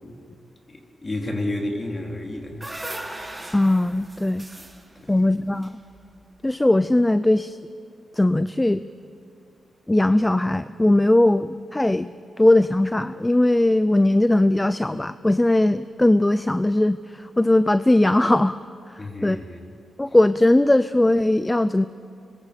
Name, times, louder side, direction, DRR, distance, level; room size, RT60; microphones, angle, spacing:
voice 1, 0.7-2.6 4.9-5.1 19.0-19.7, left 1 dB, 30° left, 2 dB, 3.1 m, -31 dB
sound 1, 2.1-6.4, right 1 dB, 10° right, 2.3 m, -38 dB
voice 2, 3.5-4.5 5.1-5.7 6.4-7.6 8.1-8.8 9.9-12.1 12.4-18.6 18.9-19.4 20.0-21.9, left 1 dB, 15° left, 13 dB, 0.4 m, -19 dB
26.0 x 22.0 x 5.1 m, 2.4 s
cardioid pair, 85°, 0 cm